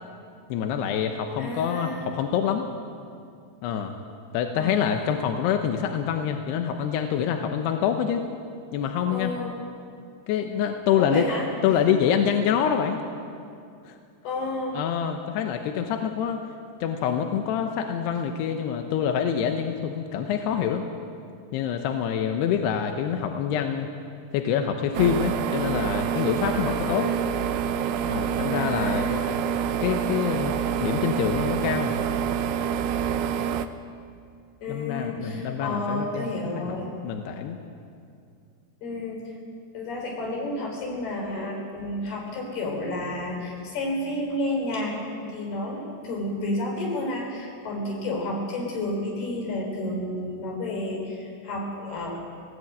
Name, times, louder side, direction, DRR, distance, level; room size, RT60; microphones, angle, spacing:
voice 1, 0.5-2.7 3.6-4.0 4.3-8.3 8.7-9.3 10.3-11.3 11.6-13.0 13.8-14.0 14.7-16.4 16.8-20.9 21.5-23.9 24.3-27.1 28.1-29.1 29.8-31.9 34.7-36.3 36.6-36.8 37.0-37.6, left 8 dB, 75° left, 5 dB, 2.6 m, -26 dB
voice 2, 1.4-2.1 4.5-5.1 9.1-9.6 11.0-11.9 14.2-14.8 26.6-27.3 28.5-29.4 34.6-36.9 38.8-39.3 39.7-52.2, left 1 dB, 55° left, 0 dB, 5.8 m, -31 dB
sound 1, 24.9-33.7, right 8 dB, 85° right, 2.3 m, -27 dB
18.5 x 17.0 x 8.7 m, 2.4 s
omnidirectional pair, 5.6 m